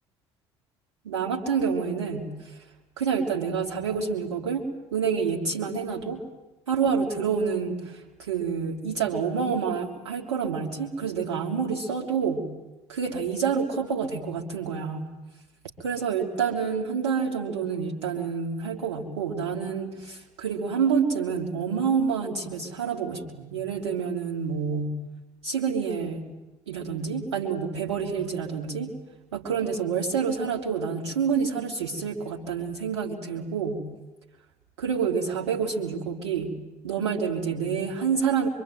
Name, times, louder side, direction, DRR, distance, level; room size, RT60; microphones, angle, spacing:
voice 1, 1.0-2.5 3.0-6.2 6.7-12.5 12.9-15.1 15.8-24.9 25.4-26.3 26.7-28.9 29.3-33.8 34.8-36.5 36.8-38.5, right 6 dB, 80° right, 2 dB, 3.4 m, -28 dB
24.5 x 24.5 x 9.3 m, 0.99 s
figure-of-eight pair, 55°, 14 cm